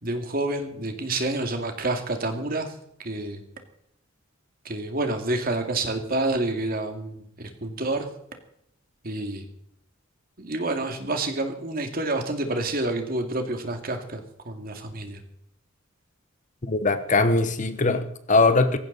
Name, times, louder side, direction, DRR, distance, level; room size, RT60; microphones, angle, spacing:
voice 1, 0.0-2.7 3.0-3.4 4.6-8.1 9.0-9.5 10.4-15.2, right 2 dB, 45° right, 2.3 m, -28 dB
voice 2, 16.6-18.8, left 3 dB, 35° left, 1.0 m, -21 dB
18.0 x 15.5 x 4.1 m
head